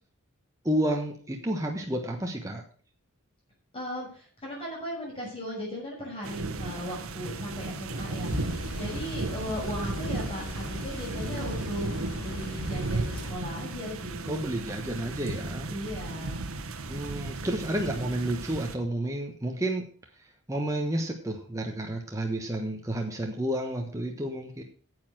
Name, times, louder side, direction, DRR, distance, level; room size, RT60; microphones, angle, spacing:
voice 1, 0.6-2.6 14.2-15.7 16.9-19.9 20.5-24.6, right 1 dB, 15° right, 2 dB, 1.1 m, -30 dB
voice 2, 3.7-11.9 12.1-14.5 15.7-16.4 17.3-17.5, equal, 25° left, -4 dB, 6.2 m, -37 dB
sound 1, 6.2-18.7, right 3 dB, 75° right, 1.1 m, -35 dB
sound 2, 8.2-13.3, left 2 dB, 90° left, 2.8 m, -37 dB
9.5 x 7.9 x 6.1 m, 0.42 s
head